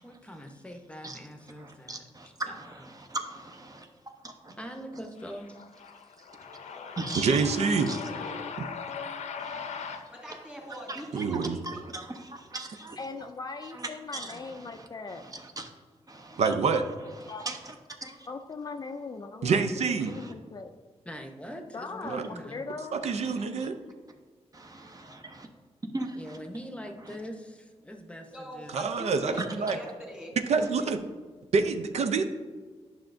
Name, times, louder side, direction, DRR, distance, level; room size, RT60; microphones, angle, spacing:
voice 1, 0.0-2.9 4.6-5.6 21.1-22.6 26.1-28.8, equal, 10° left, 4 dB, 0.8 m, -43 dB
voice 2, 1.6-2.3 2.5-3.9 4.2-4.5 7.0-7.4 7.9-8.0 9.4-10.0 10.9-13.0 13.7-15.7 16.1-16.4 17.4-17.7 18.0-18.2 20.1-20.3 23.2-23.7 24.5-25.5 25.9-26.4 29.4-29.5, right 2 dB, 30° right, 4 dB, 0.8 m, -39 dB
voice 3, 5.8-10.1, left 6 dB, 85° left, 7 dB, 0.6 m, -39 dB
voice 4, 7.2-7.9 8.6-8.7 11.1-11.6 16.4-16.8 19.4-20.1 22.1-22.3 22.9-23.8 28.7-29.8 30.5-31.0 31.5-32.2, right 5 dB, 70° right, 8 dB, 0.5 m, -26 dB
voice 5, 10.1-12.5 28.3-30.3 30.8-30.9, equal, 10° right, -1 dB, 1.9 m, -43 dB
voice 6, 13.0-15.2 17.3-17.5 18.3-20.7 21.7-22.2 22.5-23.0, left 4 dB, 35° left, 6 dB, 0.4 m, -39 dB
9.7 x 5.7 x 2.6 m, 1.4 s
wide cardioid pair, 100°, 11 cm